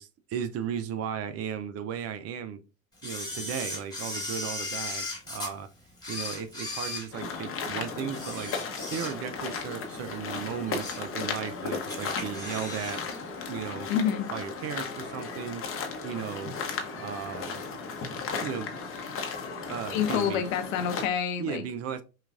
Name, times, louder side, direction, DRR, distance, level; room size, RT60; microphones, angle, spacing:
voice 1, 0.0-2.6 3.0-5.7 6.1-13.9 14.3-15.6 16.0-16.5 16.9-17.6 18.4-18.8 19.7-20.4 21.4-22.0, right 8 dB, 35° right, 0.5 m, -36 dB
Camera, 3.0-5.5 6.0-7.6 8.1-9.5 9.8-10.0 10.5-11.1 11.4-11.5 11.9-13.0 13.3-13.4, left 2 dB, 10° left, 1.8 m, -37 dB
sound 1, 7.1-21.1, left 4 dB, 30° left, 0.9 m, -35 dB
voice 2, 13.9-14.3 19.9-21.6, left 8 dB, 70° left, 0.9 m, -27 dB
5.8 x 2.4 x 2.4 m
hypercardioid pair, 80°, 42 cm